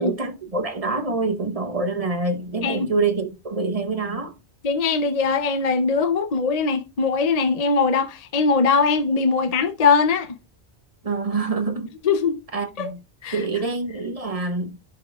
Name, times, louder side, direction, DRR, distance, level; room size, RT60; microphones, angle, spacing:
voice 1, 0.0-4.3 11.0-11.9 12.5-13.0 13.3-14.8, right 3 dB, 35° right, 1.0 m, -26 dB
voice 2, 4.6-10.3 12.0-12.4 12.8-12.9 13.2-13.4, left 4 dB, 40° left, 0.7 m, -21 dB
10.5 x 5.5 x 2.4 m
omnidirectional pair, 1.1 m